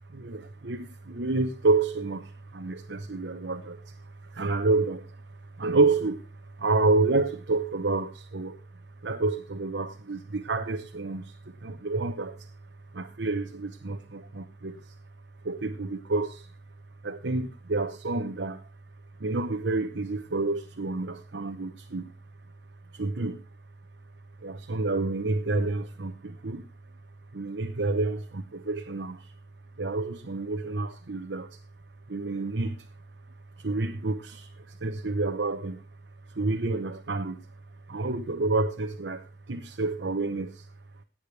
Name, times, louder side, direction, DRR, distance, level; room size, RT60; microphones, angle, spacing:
voice 1, 0.1-4.0 4.2-5.2 5.6-6.2 6.6-8.6 9.0-12.5 12.9-14.9 15.4-16.5 17.0-18.6 19.2-22.1 22.9-23.4 24.4-26.7 27.3-29.3 29.8-31.6 32.1-32.9 33.6-35.8 36.3-37.5 37.9-40.7, right 3 dB, 80° right, 0.9 m, -29 dB
17.0 x 8.8 x 3.3 m
head